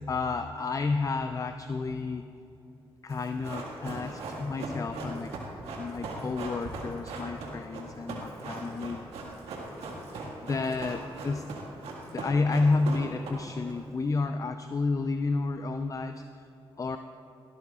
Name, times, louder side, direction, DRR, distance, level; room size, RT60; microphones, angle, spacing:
voice 1, 0.0-2.3 3.0-5.4 5.7-9.0 10.1-11.5 12.1-16.5 16.8-17.0, left 3 dB, 35° left, 8 dB, 0.5 m, -30 dB
Run, 3.1-13.7 14.0-14.1, right 3 dB, 85° right, 1.8 m, -39 dB
18.5 x 12.0 x 2.4 m, 2.8 s
supercardioid pair, 50°, 10 cm